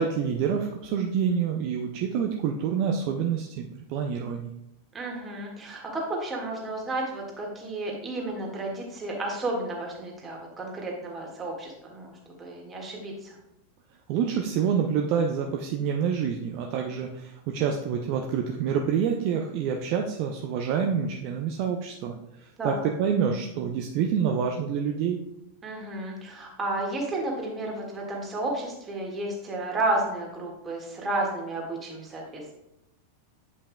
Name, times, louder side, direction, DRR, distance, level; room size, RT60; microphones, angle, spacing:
voice 1, 0.0-3.6 3.9-4.5 14.1-22.1 22.6-25.2, right 7 dB, 45° right, 3 dB, 0.5 m, -27 dB
voice 2, 4.9-12.1 12.4-13.4 22.6-22.8 25.6-32.5, right 2 dB, 20° right, -1 dB, 1.7 m, -32 dB
8.6 x 5.3 x 2.3 m, 0.85 s
figure-of-eight pair, 90°, 0 cm